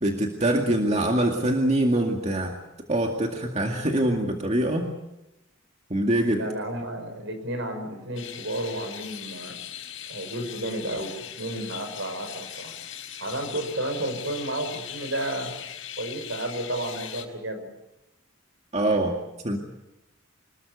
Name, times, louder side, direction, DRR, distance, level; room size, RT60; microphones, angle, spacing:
voice 1, 0.0-2.5 2.9-4.9 5.9-6.4 18.7-19.2 19.4-19.6, right 1 dB, 35° right, 2 dB, 2.2 m, -24 dB
voice 2, 6.4-9.6 10.1-12.7 13.2-15.5 16.0-17.7, right 1 dB, 65° right, 6 dB, 6.2 m, -32 dB
sound 1, 8.2-17.3, left 10 dB, 80° left, 4.4 m, -40 dB
26.5 x 20.5 x 8.3 m, 0.91 s
head